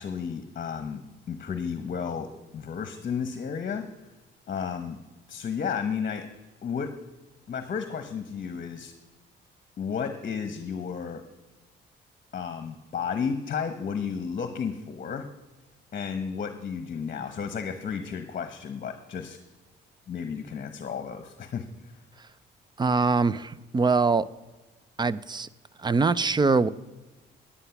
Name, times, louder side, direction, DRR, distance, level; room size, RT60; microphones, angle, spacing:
voice 1, 0.0-2.3 2.5-3.9 4.5-5.0 5.3-6.3 6.6-6.9 7.5-8.9 9.8-11.2 12.3-15.3 15.9-19.4 20.1-21.7, left 6 dB, 45° left, 9 dB, 1.0 m, -32 dB
voice 2, 22.8-24.3 25.0-25.5 25.8-26.7, right 4 dB, 20° right, 19 dB, 0.5 m, -23 dB
10.0 x 9.7 x 5.8 m, 1.1 s
cardioid pair, 90°, 20 cm